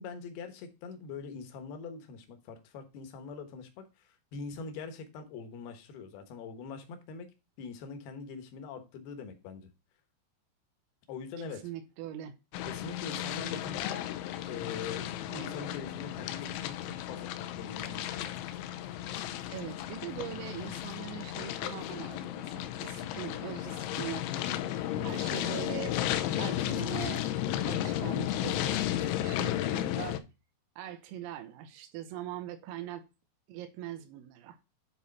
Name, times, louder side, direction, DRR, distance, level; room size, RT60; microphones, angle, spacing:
voice 1, 0.0-7.3 7.6-9.7 11.1-11.7 12.7-14.1 14.5-18.4 25.0-25.3, left 5 dB, 70° left, 2.6 m, -43 dB
voice 2, 11.4-12.4 15.3-15.8 19.5-24.6 25.0-26.0 26.3-27.3 27.7-30.2 30.8-33.0 33.5-34.6, right 11 dB, 85° right, 3.5 m, -42 dB
sound 1, 12.5-30.2, left 12 dB, 85° left, 2.7 m, -34 dB
10.5 x 4.2 x 4.1 m
omnidirectional pair, 6.0 m